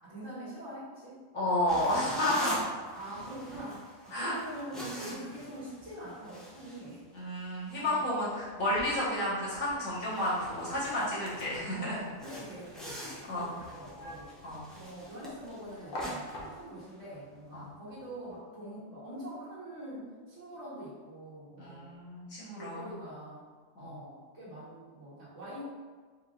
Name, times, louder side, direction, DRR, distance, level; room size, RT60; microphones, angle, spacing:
voice 1, 0.0-1.2 2.9-7.0 7.8-8.0 8.7-9.0 11.8-14.3 14.7-22.0 22.6-23.5 23.7-25.6, right 1 dB, 60° right, -7 dB, 1.6 m, -44 dB
voice 2, 1.3-2.7 4.1-4.3 7.1-12.0 13.3-13.5 14.4-14.6 17.5-17.7 21.6-22.9 23.8-23.9, left 1 dB, 80° left, -9 dB, 1.9 m, -31 dB
sound 1, 1.7-7.4 7.7-7.9 8.4-8.6 9.0-9.1 9.6-9.7 9.9-11.7 12.2-17.2, equal, ahead, 0.5 m, -45 dB
sound 2, 8.4-16.9, left 1 dB, 50° left, 0.8 m, -47 dB
4.6 x 3.6 x 2.5 m, 1.5 s
omnidirectional pair, 1.4 m